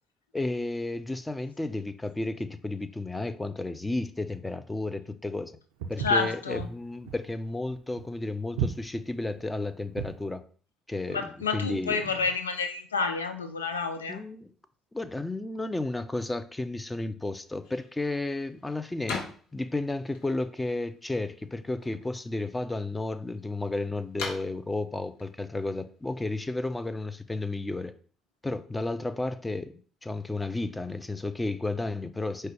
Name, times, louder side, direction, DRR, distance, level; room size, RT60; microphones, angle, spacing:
voice 1, 0.3-5.6 5.9-10.4 10.9-11.2 11.5-12.0 14.1-14.5 14.9-27.9 28.4-29.7 30.0-32.5, left 2 dB, 15° left, 10 dB, 0.4 m, -32 dB
Walk footsteps, 5.8-10.3, right 7 dB, 80° right, 0.4 m, -35 dB
voice 2, 6.0-6.7 11.1-14.2, left 4 dB, 90° left, 7 dB, 0.3 m, -29 dB
sound 1, 17.4-26.6, left 4 dB, 75° left, 0.8 m, -44 dB
4.6 x 2.2 x 4.5 m, 0.43 s
hypercardioid pair, 50°, 0 cm